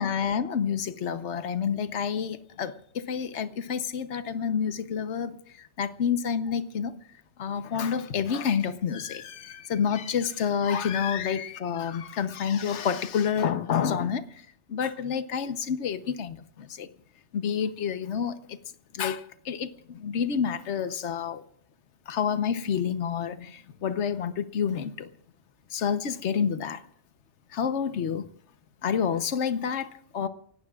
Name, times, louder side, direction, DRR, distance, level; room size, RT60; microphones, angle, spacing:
voice 1, 0.0-6.9 7.4-14.2 14.7-16.9 17.3-18.6 18.9-21.4 22.1-25.1 25.7-26.8 27.5-28.3 28.8-30.3, left 7 dB, 75° left, 1.2 m, -29 dB
29.0 x 17.5 x 2.4 m
omnidirectional pair, 1.2 m